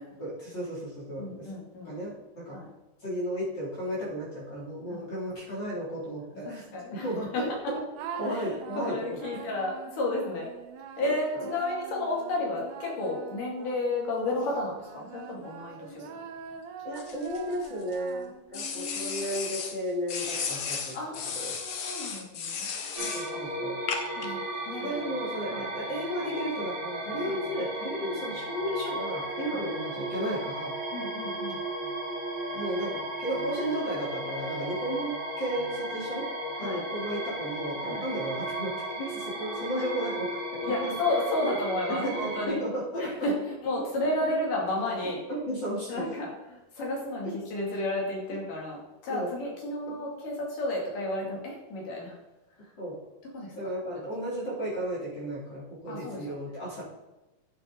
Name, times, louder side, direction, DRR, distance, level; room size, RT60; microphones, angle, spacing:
voice 1, 0.2-1.5 1.8-2.6 3.0-6.6 7.0-7.5 7.7-7.8 8.2-9.2 11.0-11.5 16.8-21.0 21.3-21.6 23.1-23.8 24.8-30.8 32.5-36.3 36.6-40.4 40.8-40.9 41.9-43.3 45.0-46.0 49.1-49.3 49.9-50.0 52.8-53.0 53.6-56.9, equal, 30° left, -6 dB, 3.6 m, -34 dB
voice 2, 1.2-2.0 2.5-2.7 4.9-5.1 6.5-7.1 7.3-7.7 8.3-8.5 8.8-10.5 11.0-16.2 18.5-19.3 20.9-22.7 23.3-23.5 24.2-24.4 24.7-24.9 25.5-25.6 27.2-27.4 29.5-29.6 30.9-31.6 36.6-36.8 37.8-38.1 40.6-42.6 43.0-43.3 43.6-45.2 45.9-52.2 53.3-53.5 55.9-56.4, left 2 dB, 70° left, -2 dB, 4.0 m, -32 dB
sound 1, 7.9-14.2 14.8-18.7, right 7 dB, 75° right, 2.3 m, -44 dB
sound 2, 17.0-18.0 18.5-19.8 20.1-23.3 23.9-24.3, left 6 dB, 85° left, 1.1 m, -34 dB
sound 3, 23.0-42.5, right 1 dB, 45° right, 3.0 m, -35 dB
11.5 x 6.9 x 3.8 m, 1.0 s
omnidirectional pair, 4.0 m